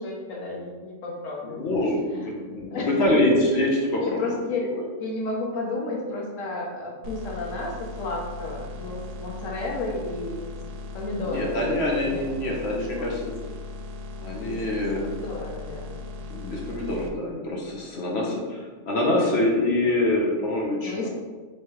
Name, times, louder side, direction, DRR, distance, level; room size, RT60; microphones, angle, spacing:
voice 1, 0.0-1.7 2.2-2.3 2.7-2.9 3.4-3.5 4.0-4.7 5.0-10.5 10.9-12.5 12.9-13.0 14.4-14.6 15.0-16.0 20.8-21.1, left 2 dB, 80° left, -1 dB, 1.3 m, -32 dB
voice 2, 1.4-4.4 4.7-4.8 11.2-13.3 14.2-15.0 16.3-21.1, left 1 dB, 60° left, -2 dB, 1.0 m, -25 dB
sound 1, 7.0-17.1, left 3 dB, 90° right, 1.0 m, -38 dB
3.2 x 3.1 x 4.5 m, 1.4 s
omnidirectional pair, 1.3 m